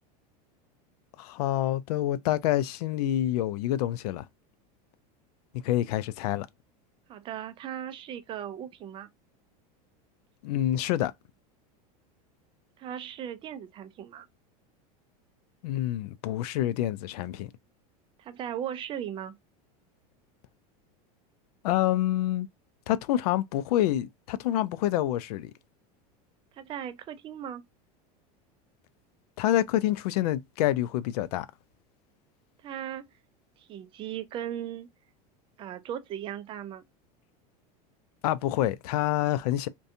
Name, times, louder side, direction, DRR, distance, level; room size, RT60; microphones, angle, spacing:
voice 1, 1.2-4.3 5.6-6.5 10.4-11.1 15.6-17.5 21.6-22.5 22.9-25.5 29.4-31.5 38.2-39.7, left 13 dB, 85° left, 0.4 m, -27 dB
voice 2, 7.1-9.1 12.8-14.3 18.2-19.4 26.5-27.6 32.6-33.1 33.6-34.9 35.6-36.8, right 10 dB, 25° right, 0.3 m, -37 dB
2.6 x 2.2 x 2.5 m
supercardioid pair, 140°, 19 cm